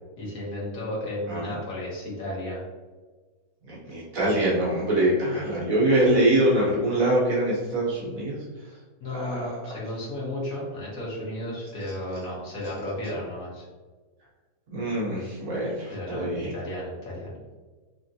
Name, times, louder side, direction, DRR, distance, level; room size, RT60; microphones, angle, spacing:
voice 1, 0.2-2.6 9.0-13.6 15.9-17.4, left 1 dB, 70° left, -6 dB, 1.8 m, -33 dB
voice 2, 3.7-8.4 9.1-9.5 14.7-16.5, right 1 dB, 70° right, -6 dB, 1.5 m, -24 dB
4.2 x 3.1 x 2.7 m, 1.3 s
omnidirectional pair, 1.6 m